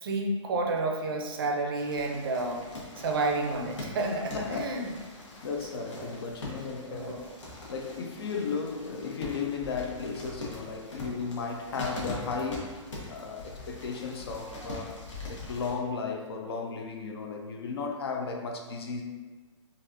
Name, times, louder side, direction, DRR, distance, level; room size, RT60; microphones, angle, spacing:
voice 1, 0.0-2.6 3.0-4.9 5.8-6.2 6.9-7.3, right 2 dB, 45° right, 2 dB, 0.5 m, -30 dB
sound 1, 1.8-15.7, left 2 dB, 70° left, 1.1 m, -42 dB
voice 2, 5.4-7.3 7.7-12.8 13.1-15.0 15.3-19.0, left 5 dB, 55° left, 3 dB, 0.5 m, -35 dB
3.9 x 2.4 x 2.6 m, 1.3 s
hypercardioid pair, 160°, 16 cm